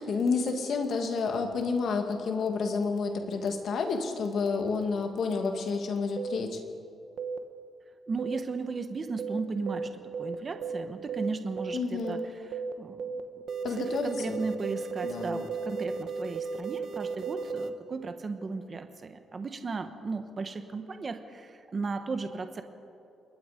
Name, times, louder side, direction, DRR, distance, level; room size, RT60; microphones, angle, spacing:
voice 1, 0.0-6.6 11.7-12.3 13.6-14.4 15.0-15.4, left 4 dB, 45° left, 4 dB, 2.3 m, -30 dB
sound 1, 6.2-6.4 7.2-7.4 8.2-8.4 9.2-9.4 9.7-9.9 10.1-10.3 10.6-10.8 11.1-11.3 11.6-11.8 12.0-12.3 12.5-12.7 13.0-13.2 13.5-17.7, right 5 dB, 50° right, 1.2 m, -34 dB
voice 2, 8.1-9.9 10.2-13.1 13.7-22.6, right 4 dB, 25° right, 8 dB, 1.2 m, -36 dB
27.0 x 21.5 x 5.2 m, 2.6 s
cardioid pair, 170°, 0 cm